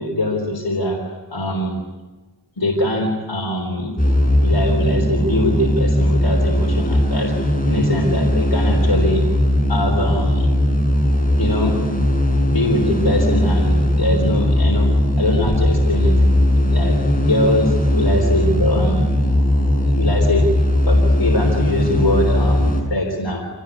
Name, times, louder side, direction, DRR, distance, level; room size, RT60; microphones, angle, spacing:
voice 1, 0.0-1.8 2.6-4.0 4.4-9.3 9.7-10.5 11.4-11.8 12.5-16.2 16.7-19.1 19.8-20.6 20.9-23.5, left 1 dB, 90° left, -1 dB, 3.6 m, -22 dB
sound 1, 4.0-22.8, left 1 dB, 20° left, 6.0 m, -18 dB
26.5 x 19.5 x 9.6 m, 1.2 s
wide cardioid pair, 45°, 42 cm